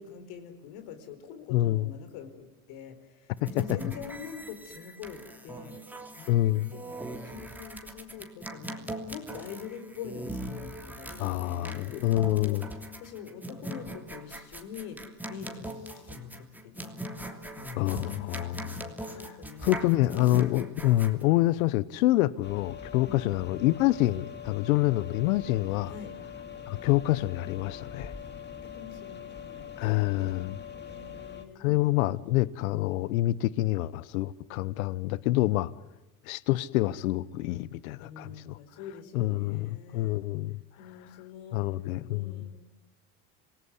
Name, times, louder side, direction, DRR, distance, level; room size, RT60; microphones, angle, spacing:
voice 1, 0.0-5.8 6.2-8.8 9.1-17.0 17.6-19.9 20.3-20.5 23.0-23.3 25.8-26.1 28.2-29.7 30.8-31.8 38.0-40.2 40.8-41.6 42.1-42.7, left 7 dB, 65° left, 4.6 m, -45 dB
voice 2, 1.5-1.9 3.4-3.8 6.3-6.7 11.2-12.6 17.8-18.8 19.1-19.3 19.6-25.9 26.7-28.1 29.8-30.6 31.6-35.7 36.3-38.6 39.1-40.5 41.5-42.4, left 16 dB, 90° left, 0.9 m, -27 dB
sound 1, 3.4-21.2, right 1 dB, 5° right, 3.0 m, -41 dB
sound 2, 22.4-31.5, left 8 dB, 25° left, 2.5 m, -43 dB
27.0 x 19.5 x 9.7 m
supercardioid pair, 120°, 40 cm